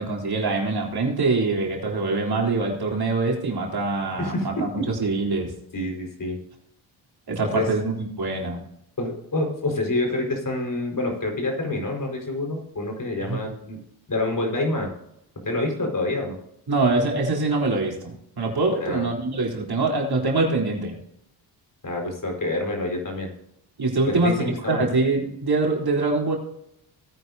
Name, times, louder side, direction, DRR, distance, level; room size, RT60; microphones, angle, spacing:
voice 1, 0.0-5.5 7.3-8.6 13.3-13.4 16.7-21.0 23.8-26.4, right 3 dB, 50° right, -1 dB, 3.7 m, -24 dB
voice 2, 4.2-4.9 5.7-6.4 7.5-7.7 9.0-13.8 14.1-14.9 15.4-16.4 18.8-19.1 21.8-23.3 24.1-24.9, left 2 dB, 40° left, 1 dB, 4.8 m, -27 dB
18.5 x 9.4 x 2.7 m, 0.77 s
cardioid pair, 70°, 49 cm